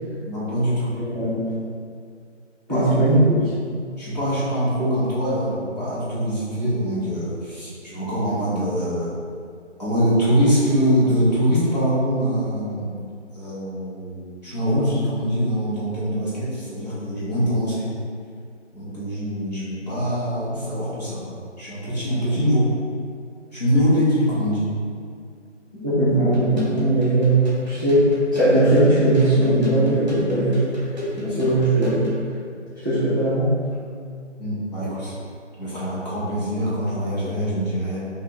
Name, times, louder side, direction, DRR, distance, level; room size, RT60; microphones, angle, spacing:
voice 1, 0.2-0.9 2.7-2.9 3.3-3.4 4.0-9.1 9.8-13.0 13.3-17.9 18.7-21.3 21.6-22.7 23.5-24.7 31.3-31.5 34.4-35.1 35.6-38.0, equal, 35° left, -11 dB, 1.3 m, -23 dB
voice 2, 2.7-3.4 25.8-30.6 31.2-32.1 32.8-33.5, right 1 dB, 15° right, -16 dB, 0.7 m, -19 dB
sound 1, 26.3-32.2, equal, 35° right, 1.1 m, -34 dB
4.7 x 2.7 x 2.9 m, 2.2 s
figure-of-eight pair, 160°, 37 cm